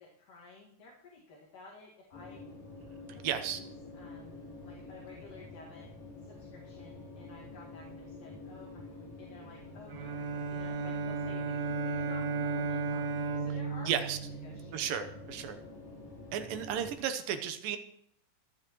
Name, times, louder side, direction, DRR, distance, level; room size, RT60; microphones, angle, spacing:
voice 1, 0.0-2.4 3.1-3.7 3.9-5.9 6.2-14.9, left 3 dB, 70° left, -4 dB, 3.6 m, -54 dB
sound 1, 2.1-17.0, left 2 dB, 50° left, 5.2 m, -48 dB
voice 2, 3.2-3.6 13.9-14.2 14.7-15.6 16.3-17.8, right 9 dB, 90° right, 9 dB, 2.7 m, -33 dB
Bowed string instrument, 9.9-15.1, right 5 dB, 60° right, 2.3 m, -35 dB
24.0 x 9.6 x 3.1 m, 0.74 s
omnidirectional pair, 3.9 m